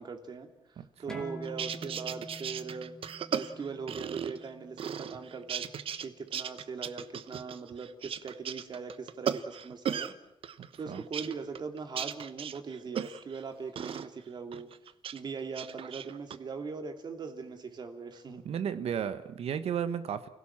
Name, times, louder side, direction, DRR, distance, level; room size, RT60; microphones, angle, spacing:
voice 1, 0.0-3.0 3.3-5.7 6.0-10.1 10.8-14.7 15.1-18.4, right 5 dB, 45° right, 6 dB, 2.8 m, -40 dB
voice 2, 0.8-1.2 10.6-11.0 18.4-20.3, right 8 dB, 85° right, 11 dB, 1.4 m, -34 dB
sound 1, 1.1-6.3, equal, 5° left, 2.4 m, -48 dB
sound 2, 1.4-4.5 4.8-6.1 6.3-10.1 10.4-13.4 13.8-14.1 14.5-15.2 15.5-16.4, right 8 dB, 65° right, 1.1 m, -36 dB
29.5 x 17.0 x 7.4 m, 0.81 s
wide cardioid pair, 160°, 10 cm